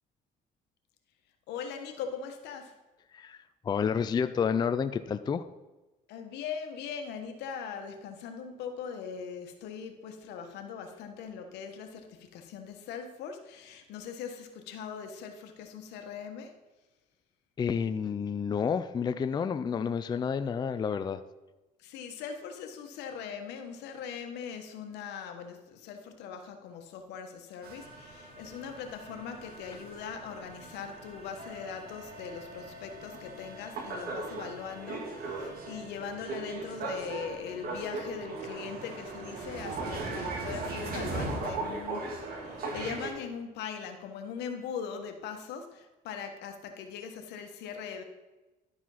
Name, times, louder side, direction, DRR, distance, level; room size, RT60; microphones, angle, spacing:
voice 1, 1.5-2.8 6.1-16.6 21.8-48.0, left 6 dB, 85° left, 5 dB, 1.3 m, -40 dB
voice 2, 3.1-5.4 17.6-21.2, left 6 dB, 25° left, 11 dB, 0.4 m, -30 dB
sound 1, 27.6-43.1, right 3 dB, 65° right, 2.0 m, -39 dB
Wind instrument woodwind instrument, 31.3-35.9, left 3 dB, 20° right, 1.1 m, -51 dB
11.0 x 5.0 x 5.7 m, 1.1 s
cardioid pair, 110°, 17 cm